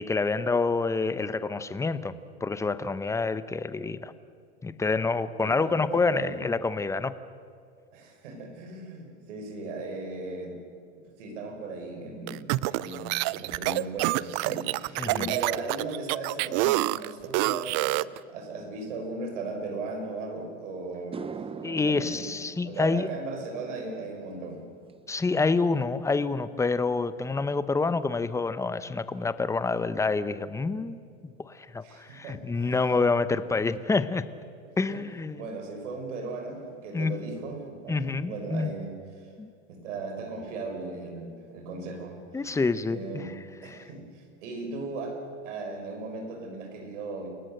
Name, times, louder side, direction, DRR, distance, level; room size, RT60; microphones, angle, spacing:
voice 1, 0.0-4.1 4.6-7.1 15.0-15.3 21.6-23.1 25.1-31.0 31.4-34.2 34.8-35.4 36.9-37.1 37.9-38.7 39.4-39.5 42.3-43.3 43.7-43.9, left 4 dB, 10° left, 14 dB, 0.8 m, -27 dB
voice 2, 5.4-6.4 7.9-10.6 11.2-21.2 21.9-22.2 22.6-24.6 31.8-32.8 34.9-35.0 35.3-38.9 39.2-39.3 39.7-42.2 42.9-43.3 43.6-47.3, right 3 dB, 80° right, 4 dB, 6.1 m, -37 dB
sound 1, 12.3-18.2, right 20 dB, 45° right, 0.5 m, -27 dB
sound 2, 20.4-20.5 20.9-29.4 29.7-30.1 33.7-33.8 35.5-35.6 35.9-36.0 36.3-36.8, right 5 dB, 15° right, 0.9 m, -46 dB
28.5 x 17.5 x 7.9 m, 2.2 s
supercardioid pair, 125°, 36 cm